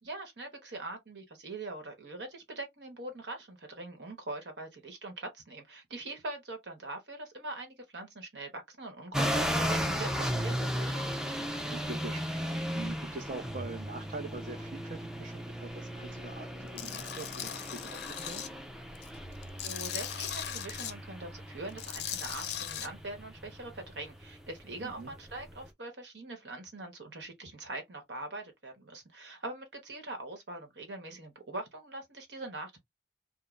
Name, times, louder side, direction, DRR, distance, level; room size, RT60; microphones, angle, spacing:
voice 1, 0.0-11.1 19.6-32.8, right 2 dB, 80° right, 1.1 m, -42 dB
sound 1, 9.1-25.7, equal, 5° right, 0.4 m, -36 dB
voice 2, 11.5-18.5 24.8-25.1, right 3 dB, 45° right, 0.7 m, -44 dB
Tools, 16.8-18.5 19.0-20.9 21.7-22.9, left 10 dB, 65° left, 0.4 m, -38 dB
2.5 x 2.1 x 3.1 m
head